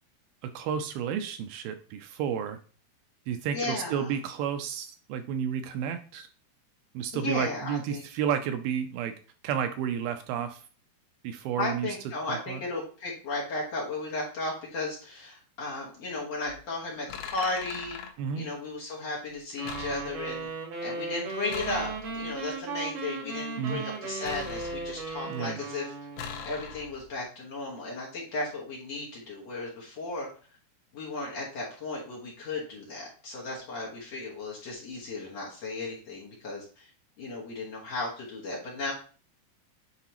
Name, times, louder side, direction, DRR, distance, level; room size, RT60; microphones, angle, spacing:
voice 1, 0.4-2.6 3.3-6.3 6.9-9.1 9.4-10.6 11.2-11.9 12.3-12.6 18.2-18.5 23.6-23.8 25.3-25.6, right 8 dB, 80° right, 8 dB, 2.2 m, -31 dB
voice 2, 3.5-4.1 7.1-8.0 11.6-18.0 18.4-20.5 20.8-25.9 26.4-30.3 30.9-36.9 37.2-38.9, left 2 dB, 55° left, -5 dB, 2.0 m, -35 dB
sound 1, 16.3-16.6 17.1-18.1 19.6-20.4 21.5-22.3 24.2-25.2 26.2-27.1, left 7 dB, 85° left, 2.9 m, -41 dB
sound 2, 19.6-26.5, right 4 dB, 60° right, 3.1 m, -37 dB
9.7 x 3.9 x 2.9 m, 0.40 s
omnidirectional pair, 4.5 m